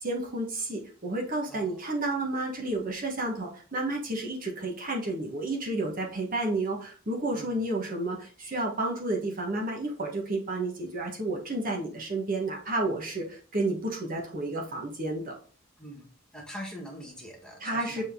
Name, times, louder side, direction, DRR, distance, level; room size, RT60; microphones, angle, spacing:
voice 1, 0.0-15.4 17.6-18.0, right 2 dB, 40° right, -1 dB, 1.3 m, -31 dB
voice 2, 1.5-1.8 7.3-7.6 15.8-18.0, equal, 5° left, -2 dB, 1.5 m, -43 dB
7.0 x 3.9 x 3.7 m, 0.42 s
head